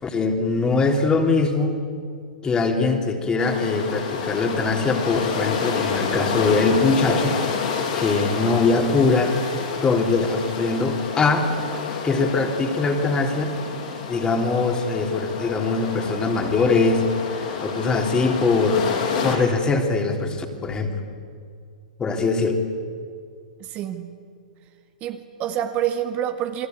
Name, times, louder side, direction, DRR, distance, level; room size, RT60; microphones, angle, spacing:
voice 1, 0.0-1.8 2.4-7.4 8.0-9.4 9.8-11.5 12.0-13.5 14.1-17.1 17.3-18.9 19.2-20.9 22.0-22.6, left 3 dB, 20° left, 3 dB, 3.3 m, -22 dB
sound 1, 3.4-19.4, left 6 dB, 60° left, 6.6 m, -29 dB
voice 2, 23.6-24.2 25.0-26.7, right 10 dB, 35° right, 6 dB, 1.8 m, -27 dB
29.5 x 20.5 x 9.5 m, 2.2 s
hypercardioid pair, 120°, 4 cm